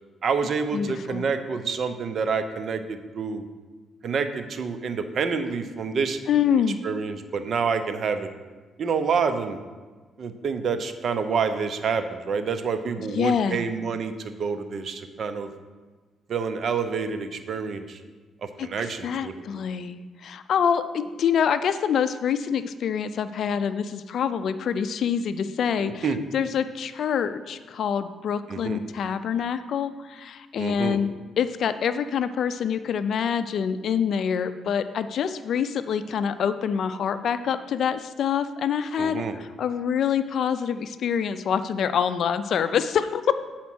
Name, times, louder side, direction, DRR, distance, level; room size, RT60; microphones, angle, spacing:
voice 1, 0.2-3.5 4.0-6.2 6.8-8.3 8.8-9.6 10.2-15.5 16.3-18.0 18.4-19.6 25.8-26.2 28.5-28.8 30.6-31.0 39.0-39.3, right 5 dB, 55° right, 9 dB, 0.7 m, -28 dB
voice 2, 0.7-1.3 6.3-6.8 13.1-13.6 18.6-43.3, left 7 dB, 65° left, 12 dB, 0.4 m, -26 dB
8.2 x 4.3 x 6.1 m, 1.4 s
cardioid pair, 90°, 0 cm